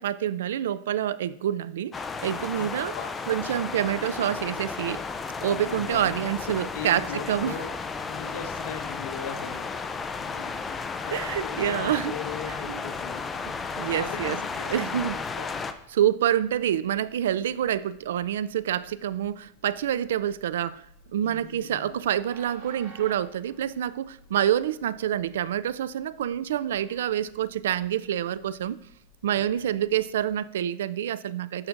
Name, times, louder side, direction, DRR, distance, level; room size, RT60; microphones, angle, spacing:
voice 1, 0.0-2.9 3.3-5.0 5.4-7.6 11.1-12.1 12.7-12.8 13.8-14.4 14.7-15.2 15.9-20.8 21.1-28.8 29.2-31.7, right 10 dB, 90° right, 0.3 m, -27 dB
sound 1, 1.9-15.7, left 4 dB, 15° left, 0.4 m, -33 dB
voice 2, 2.9-3.6 5.5-6.3 6.7-9.9 10.2-10.8 11.0-13.3 13.9-15.6 21.2-22.0 29.4-29.8, left 6 dB, 70° left, 1.1 m, -39 dB
Train, 11.9-30.4, right 1 dB, 60° right, 2.4 m, -56 dB
11.0 x 5.9 x 2.5 m
supercardioid pair, 150°, 0 cm